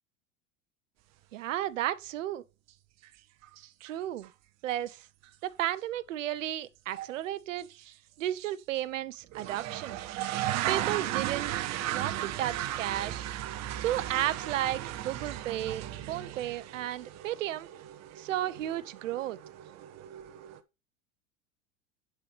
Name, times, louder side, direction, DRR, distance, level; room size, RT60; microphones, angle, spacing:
voice 1, 1.3-2.4 3.8-4.3 4.6-5.0 5.4-7.7 8.2-10.0 10.7-11.5 11.9-13.3 13.8-17.7 18.2-19.4, right 13 dB, 75° right, 1.0 m, -33 dB
sound 1, 3.0-3.1 3.4-3.9 4.2-4.3 4.9-5.0 5.2-5.3 7.0-7.2 7.7-7.9 8.4-8.5 9.3-20.6, right 13 dB, 40° right, 1.2 m, -36 dB
11.0 x 4.8 x 5.0 m
hypercardioid pair, 90°, 39 cm